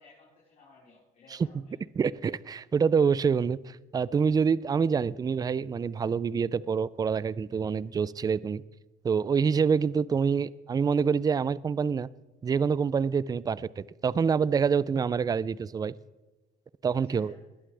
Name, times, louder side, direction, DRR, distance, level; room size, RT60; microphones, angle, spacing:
voice 1, 0.0-1.8 17.0-17.4, left 3 dB, 45° left, -7 dB, 4.9 m, -57 dB
voice 2, 2.0-8.6 9.0-12.1 12.4-15.9 16.8-17.3, right 6 dB, 20° right, 20 dB, 0.4 m, -26 dB
20.0 x 11.0 x 3.4 m, 1.1 s
cardioid pair, 110°, 17 cm